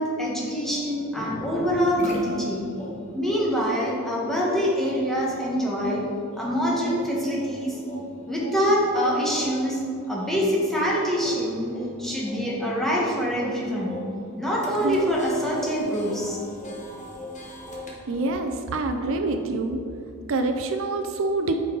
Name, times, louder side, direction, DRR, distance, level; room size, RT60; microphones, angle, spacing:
voice 1, 0.0-2.7 3.1-6.1 6.4-7.8 8.3-9.8 10.1-14.0 14.4-16.4, equal, ahead, -5 dB, 1.3 m, -25 dB
sound 1, 1.7-18.7 19.0-19.5, equal, 35° left, 1.2 m, -40 dB
voice 2, 18.1-19.8 20.3-21.6, right 3 dB, 60° right, 6 dB, 0.5 m, -26 dB
8.8 x 5.4 x 3.9 m, 2.4 s
head